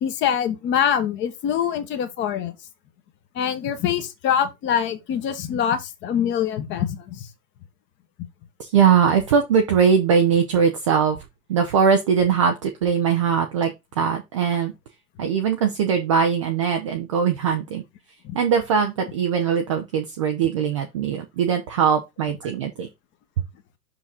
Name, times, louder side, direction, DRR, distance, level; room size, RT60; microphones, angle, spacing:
voice 1, 0.0-2.5 3.3-7.3 18.2-18.4, left 9 dB, 25° left, 1.0 m, -24 dB
voice 2, 8.6-11.2 11.5-14.7 15.2-17.8 18.3-22.9, right 7 dB, 20° right, 0.4 m, -21 dB
5.7 x 5.0 x 3.7 m
figure-of-eight pair, 110°, 50 cm